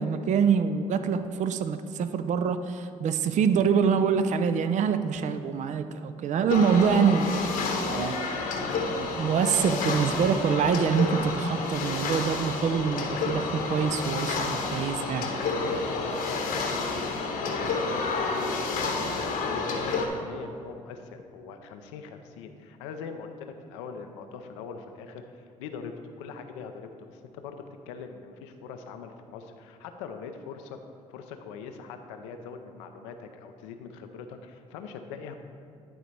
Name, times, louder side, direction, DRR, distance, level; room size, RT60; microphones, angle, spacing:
voice 1, 0.0-7.3 7.9-8.4 8.9-15.3, right 6 dB, 55° right, 10 dB, 0.5 m, -25 dB
sound 1, 6.5-20.1, left 3 dB, 70° left, 1.1 m, -30 dB
voice 2, 15.6-27.6 27.9-30.8 31.1-35.4, left 5 dB, 90° left, 6 dB, 0.6 m, -42 dB
11.0 x 4.0 x 4.6 m, 2.4 s
hypercardioid pair, 55°, 15 cm